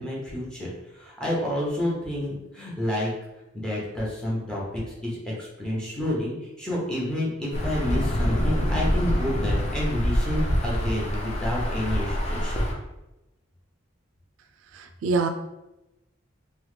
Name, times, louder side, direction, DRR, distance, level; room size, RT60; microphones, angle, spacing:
voice 1, 0.0-3.1 3.5-12.5, left 1 dB, 5° left, -4 dB, 0.8 m, -29 dB
Insect / Thunder / Rain, 7.5-12.7, equal, 35° left, 0.5 m, -25 dB
voice 2, 14.7-15.3, right 4 dB, 80° right, 6 dB, 0.3 m, -25 dB
3.0 x 2.1 x 3.2 m, 0.97 s
head